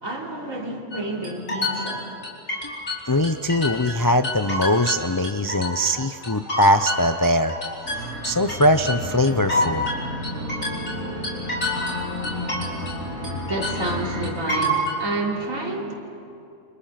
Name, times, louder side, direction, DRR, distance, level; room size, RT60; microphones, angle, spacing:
voice 1, 0.0-2.1 13.3-15.9, right 1 dB, 70° right, -1 dB, 3.8 m, -29 dB
sound 1, 0.9-4.0 4.2-5.9 6.2-13.0 13.2-15.0, left 1 dB, 70° left, 4.8 m, -28 dB
voice 2, 3.1-7.8 8.2-9.9, left 1 dB, 35° left, 9 dB, 0.3 m, -21 dB
sound 2, 7.8-14.3, left 1 dB, 85° right, 6.2 m, -32 dB
30.0 x 26.5 x 5.9 m, 2.7 s
omnidirectional pair, 1.4 m